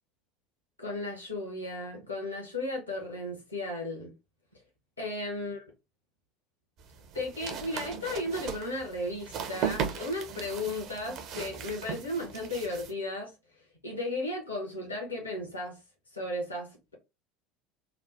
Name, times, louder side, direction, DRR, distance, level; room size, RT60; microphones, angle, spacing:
voice 1, 0.8-4.1 5.0-5.7 7.1-15.8 16.1-16.9, left 2 dB, 80° left, 0.9 m, -35 dB
sound 1, 6.8-12.9, right 7 dB, 50° right, 0.5 m, -37 dB
3.2 x 2.1 x 2.6 m
figure-of-eight pair, 70°, 0 cm